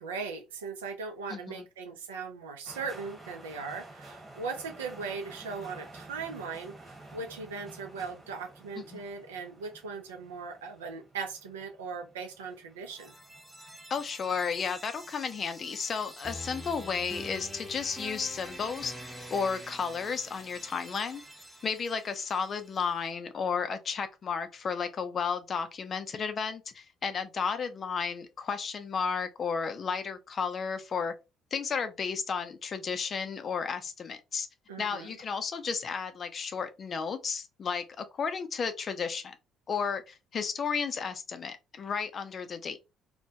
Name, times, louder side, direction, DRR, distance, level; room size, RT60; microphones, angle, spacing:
voice 1, 0.0-13.2 34.7-35.2, right 5 dB, 80° right, 0.4 m, -39 dB
voice 2, 1.3-1.7 8.8-9.0 13.9-18.9 19.3-21.2 21.6-31.1 31.5-34.5 34.8-39.3 39.7-42.8, left 6 dB, 45° left, 0.5 m, -33 dB
sound 1, 2.6-21.4, right 2 dB, 25° right, 1.2 m, -53 dB
sound 2, 12.8-22.8, equal, 5° left, 0.7 m, -46 dB
2.1 x 2.1 x 2.7 m
hypercardioid pair, 50°, 0 cm